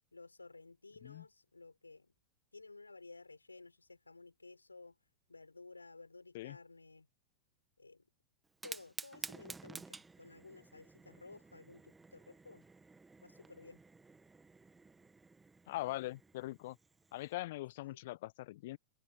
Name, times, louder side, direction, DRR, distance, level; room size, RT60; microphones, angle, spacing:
voice 1, 0.1-2.1 2.5-5.0 5.3-7.1 7.8-8.1 8.6-12.6 13.2-13.8 17.9-18.0, left 3 dB, 80° left, 6.0 m, -55 dB
Fire, 8.5-17.3, right 3 dB, 10° right, 1.8 m, -52 dB
voice 2, 15.7-16.8 17.1-18.8, left 17 dB, 55° left, 1.1 m, -42 dB
figure-of-eight pair, 90°, 0 cm